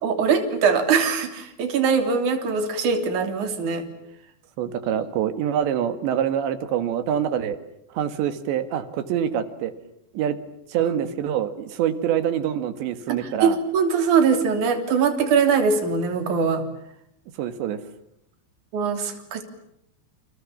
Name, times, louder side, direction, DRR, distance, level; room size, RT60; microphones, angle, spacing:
voice 1, 0.0-3.9 10.8-10.9 13.2-16.6 18.7-19.4, right 5 dB, 45° right, 6 dB, 4.3 m, -22 dB
voice 2, 4.6-7.6 7.9-9.7 10.1-10.4 10.7-13.6 17.4-17.8, right 9 dB, 75° right, 11 dB, 3.9 m, -25 dB
29.5 x 27.0 x 7.3 m, 0.76 s
omnidirectional pair, 5.1 m